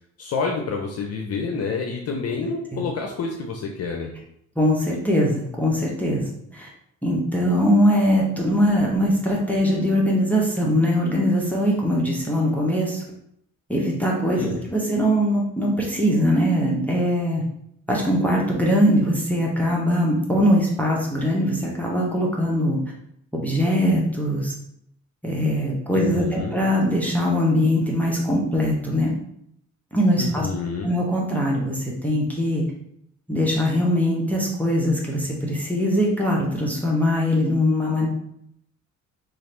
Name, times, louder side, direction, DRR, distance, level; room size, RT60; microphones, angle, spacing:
voice 1, 0.2-4.1 14.4-14.7 25.9-26.6 30.2-30.9, left 4 dB, 55° left, 2 dB, 0.6 m, -28 dB
voice 2, 4.6-6.7 7.0-13.0 13.7-17.4 17.9-22.8 23.3-24.5 25.2-29.1 29.9-30.5 30.8-32.6 33.3-38.1, equal, 5° left, -3 dB, 0.8 m, -21 dB
3.1 x 2.5 x 4.3 m, 0.72 s
cardioid pair, 90°, 30 cm